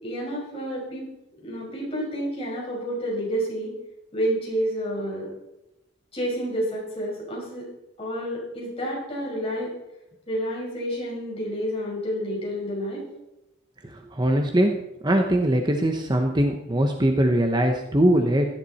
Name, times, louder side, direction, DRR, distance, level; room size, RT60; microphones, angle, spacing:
voice 1, 0.0-1.1 1.4-3.7 4.1-5.3 6.1-7.7 8.0-9.7 10.3-13.0, equal, 30° left, -3 dB, 5.7 m, -29 dB
voice 2, 14.1-14.7 15.0-18.5, right 1 dB, 20° right, 3 dB, 1.0 m, -21 dB
17.0 x 12.0 x 4.3 m, 0.93 s
head